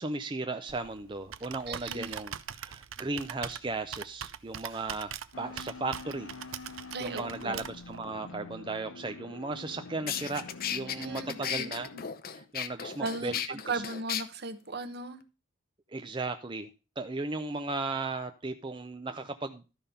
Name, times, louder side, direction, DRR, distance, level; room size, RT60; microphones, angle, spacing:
voice 1, 0.0-6.3 7.0-10.4 10.7-11.9 12.3-13.8 15.9-16.7 17.0-19.7, right 3 dB, 25° right, 7 dB, 0.5 m, -36 dB
Computer keyboard, 0.7-8.0, right 9 dB, 80° right, 0.6 m, -42 dB
voice 2, 1.7-2.1 6.9-7.6 10.9-12.1 13.0-15.2, right 3 dB, 50° right, 11 dB, 1.1 m, -37 dB
sound 1, 5.3-12.1, left 3 dB, 80° left, 0.7 m, -46 dB
sound 2, 9.6-9.7 10.1-14.2, left 9 dB, 45° left, 0.7 m, -35 dB
13.0 x 5.3 x 5.6 m, 0.31 s
head